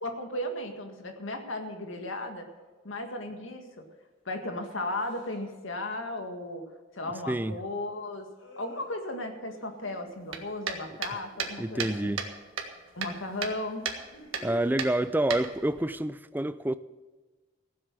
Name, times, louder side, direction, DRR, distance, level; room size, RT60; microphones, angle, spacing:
voice 1, 0.0-2.5 2.8-3.9 4.3-6.7 6.9-8.3 8.6-12.2 12.9-13.9, left 1 dB, 75° left, 1.9 m, -35 dB
sound 1, 2.5-2.8 4.9-5.5 8.1-11.7 13.5-14.7, left 2 dB, 90° left, 4.5 m, -51 dB
sound 2, 10.3-12.3 12.6-13.6 13.8-14.0 14.3-14.5 14.8-15.8, right 6 dB, 80° right, 1.6 m, -34 dB
voice 2, 11.6-12.2 14.4-16.7, right 1 dB, 10° right, 0.4 m, -28 dB
15.5 x 8.0 x 7.5 m
head